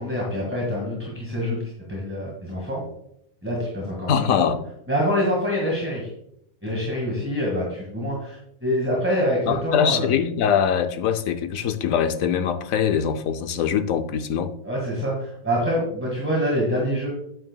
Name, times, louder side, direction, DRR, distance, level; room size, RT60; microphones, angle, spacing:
voice 1, 0.0-1.6 1.9-2.8 3.4-4.5 4.9-6.1 6.6-10.1 14.6-17.1, equal, 10° right, -3 dB, 1.7 m, -25 dB
voice 2, 4.1-4.6 9.5-14.5, left 8 dB, 70° left, 9 dB, 1.0 m, -22 dB
9.0 x 8.8 x 2.3 m, 0.74 s
omnidirectional pair, 1.5 m